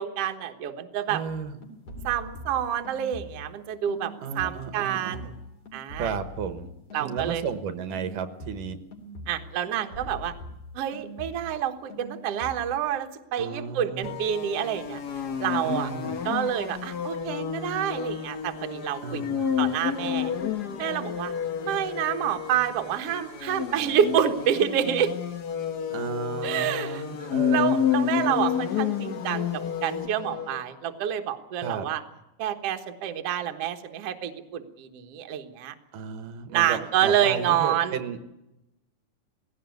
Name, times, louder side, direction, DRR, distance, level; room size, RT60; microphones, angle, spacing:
voice 1, 0.0-1.2 2.0-5.3 5.7-6.1 6.9-7.4 9.3-10.3 10.7-15.0 15.4-15.9 16.2-19.2 19.6-20.3 20.8-21.3 21.6-25.1 26.4-32.0 32.4-35.7 36.5-38.0, right 10 dB, 55° right, 6 dB, 2.1 m, -28 dB
voice 2, 1.1-1.6 4.2-5.3 6.0-6.7 7.0-8.8 13.4-14.2 15.6-16.2 19.0-19.7 25.9-27.8 31.6-31.9 35.9-38.2, right 6 dB, 85° right, 10 dB, 2.9 m, -34 dB
sound 1, 1.3-3.6 3.9-7.6 7.9-11.6 11.9-12.7, left 1 dB, 50° left, 4.5 m, -43 dB
sound 2, 14.0-30.6, left 8 dB, 75° left, 0.9 m, -30 dB
18.5 x 17.0 x 9.3 m, 0.91 s
omnidirectional pair, 3.7 m